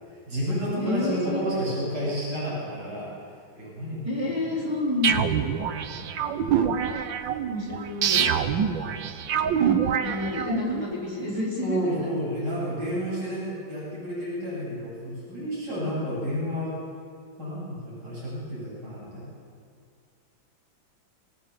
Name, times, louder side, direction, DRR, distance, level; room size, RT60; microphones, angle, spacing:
voice 1, 0.3-3.1 3.6-4.0 5.6-6.4 7.4-7.6 8.8-9.1 9.3-9.7 11.6-16.8 17.4-19.3, equal, 55° right, -7 dB, 8.9 m, -31 dB
voice 2, 0.8-1.4 4.0-5.3 7.5-8.4 8.9-12.1, left 2 dB, 10° right, -6 dB, 4.3 m, -30 dB
sound 1, 5.0-10.8, right 8 dB, 75° right, 1.7 m, -25 dB
27.5 x 17.5 x 7.1 m, 2.2 s
omnidirectional pair, 2.1 m